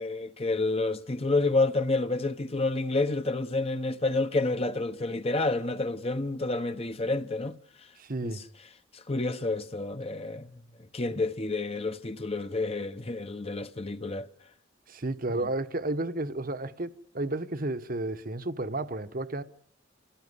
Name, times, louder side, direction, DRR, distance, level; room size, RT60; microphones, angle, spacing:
voice 1, 0.0-7.6 8.2-8.3 8.9-10.5 10.9-14.3, left 2 dB, 30° left, 1.0 m, -29 dB
voice 2, 8.0-8.4 14.9-19.4, right 2 dB, 50° right, 1.1 m, -32 dB
27.0 x 17.5 x 9.7 m
head